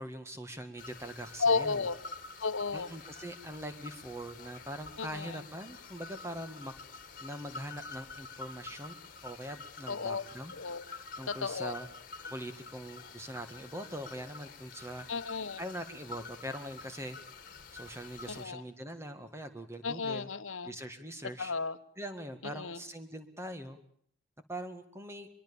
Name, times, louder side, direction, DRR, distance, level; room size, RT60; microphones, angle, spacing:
voice 1, 0.0-1.9 2.7-6.7 7.2-8.9 9.2-10.5 11.2-11.9 12.3-15.1 15.6-17.2 17.7-20.3 20.6-21.5 22.0-23.8 24.5-25.3, right 1 dB, 15° right, 8 dB, 1.8 m, -42 dB
sound 1, 0.8-18.5, left 4 dB, 45° left, 2.0 m, -48 dB
voice 2, 1.4-1.9 2.4-2.9 5.0-5.3 9.9-10.2 10.6-10.8 11.3-11.7 15.1-15.6 18.3-18.6 19.8-20.7 21.4-21.8 22.6-22.8, left 4 dB, 85° left, 12 dB, 1.2 m, -32 dB
23.5 x 22.5 x 7.1 m, 0.63 s
head